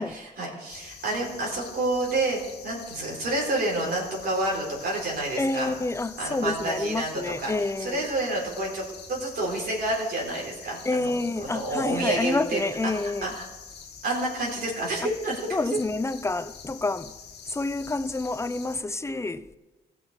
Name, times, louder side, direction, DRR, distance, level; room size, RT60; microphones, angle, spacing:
voice 1, 0.0-5.7 6.2-13.4 14.0-15.5, right 2 dB, 65° right, 3.9 m, -29 dB
sound 1, 0.7-18.8, left 6 dB, 80° left, 1.7 m, -45 dB
voice 2, 5.4-8.1 10.8-13.3 15.5-17.2 17.5-19.5, left 2 dB, 15° left, 0.6 m, -28 dB
15.5 x 6.1 x 5.4 m
cardioid pair, 70°, 17 cm